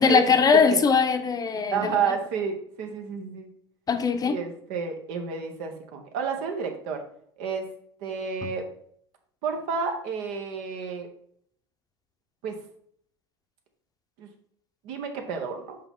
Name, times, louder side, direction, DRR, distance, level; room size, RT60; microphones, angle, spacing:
voice 1, 0.0-2.0 3.9-4.4, left 5 dB, 30° left, 7 dB, 0.8 m, -21 dB
voice 2, 1.7-3.5 4.2-7.0 7.4-7.6 8.0-8.6 9.4-11.1 12.4-12.6 14.2-14.3 14.8-15.8, right 5 dB, 65° right, 4 dB, 1.2 m, -30 dB
5.6 x 4.5 x 3.8 m, 0.65 s
hypercardioid pair, 90°, 13 cm